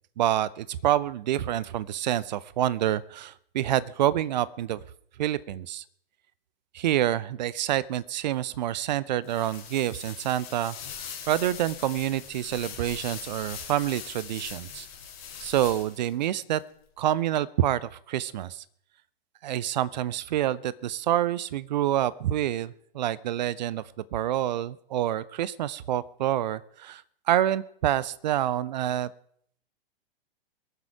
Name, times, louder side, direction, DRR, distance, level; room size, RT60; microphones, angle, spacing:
voice 1, 0.2-4.8 5.2-5.8 6.7-14.9 15.4-16.6 17.0-18.6 19.4-23.8 24.1-29.1, right 12 dB, 45° right, 19 dB, 0.7 m, -27 dB
sound 1, 9.2-16.1, left 8 dB, 50° left, 3.3 m, -41 dB
22.5 x 7.5 x 4.9 m, 0.64 s
figure-of-eight pair, 105°, 30 cm